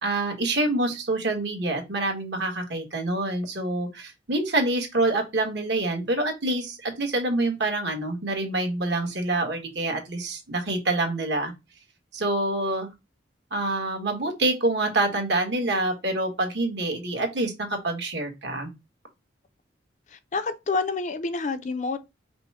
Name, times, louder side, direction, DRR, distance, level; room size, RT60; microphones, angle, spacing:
voice 1, 0.0-11.5 12.1-12.9 13.5-18.7, right 2 dB, 70° right, 1.5 m, -26 dB
voice 2, 20.1-22.0, left 4 dB, 40° left, 0.5 m, -28 dB
5.1 x 2.1 x 4.7 m
head